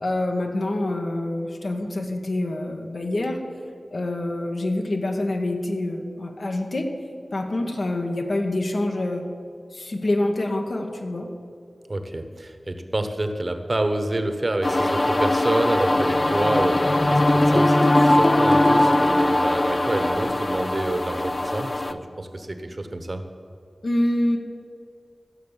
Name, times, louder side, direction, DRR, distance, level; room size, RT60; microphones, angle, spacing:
voice 1, 0.0-3.4 3.9-6.9 7.3-9.2 9.7-11.3 23.8-24.4, left 1 dB, 65° left, 2 dB, 1.4 m, -26 dB
voice 2, 11.9-23.2, right 1 dB, 40° right, 7 dB, 1.1 m, -28 dB
sound 1, 14.6-21.9, left 1 dB, 30° left, 0.6 m, -20 dB
15.0 x 6.5 x 7.3 m, 2.4 s
wide cardioid pair, 55°, 0 cm